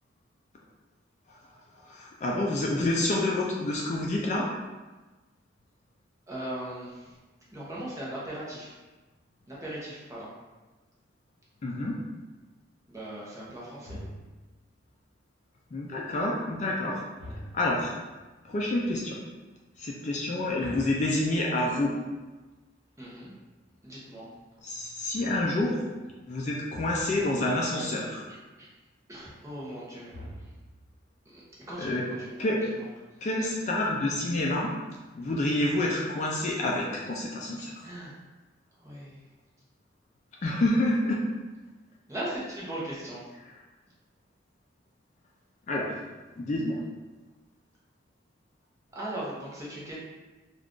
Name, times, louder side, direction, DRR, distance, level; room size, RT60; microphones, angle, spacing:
voice 1, 1.9-4.5 11.6-12.0 15.7-17.0 17.5-17.9 18.4-19.2 19.8-22.0 24.6-25.8 26.3-28.2 31.8-32.0 32.4-32.6 33.2-34.7 35.1-37.8 40.4-41.2 45.7-46.0 46.4-46.8, left 1 dB, 35° left, -2 dB, 0.3 m, -28 dB
voice 2, 6.3-7.2 7.5-8.8 9.5-10.3 12.9-14.0 23.0-23.3 23.8-24.3 27.8-27.9 28.3-28.7 29.1-30.5 31.3-31.4 31.7-32.8 37.8-38.2 38.8-39.2 42.1-43.2 48.9-50.0, right 1 dB, 15° right, -7 dB, 0.6 m, -39 dB
sound 1, 13.9-14.6 17.2-18.0 20.6-21.8 26.7-27.4 30.1-30.9, equal, 75° right, 1.0 m, -44 dB
2.4 x 2.3 x 3.5 m, 1.2 s
head